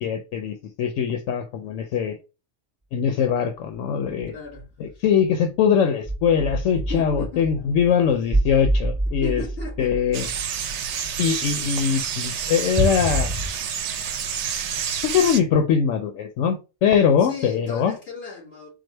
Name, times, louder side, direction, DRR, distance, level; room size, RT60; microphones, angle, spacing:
voice 1, 0.0-2.2 2.9-4.3 4.8-9.4 9.8-10.3 11.2-13.3 15.0-17.9, left 7 dB, 90° left, 0.9 m, -22 dB
sound 1, 3.7-3.8 4.1-4.6 4.9-5.0 6.0-11.1 12.8-13.5, right 1 dB, 10° right, 0.6 m, -27 dB
voice 2, 4.3-4.7 4.9-5.0 6.7-7.5 9.2-10.0 17.2-18.7, left 4 dB, 55° left, 2.8 m, -35 dB
sound 2, 10.1-15.4, right 8 dB, 70° right, 0.9 m, -29 dB
4.8 x 2.2 x 4.3 m
omnidirectional pair, 1.3 m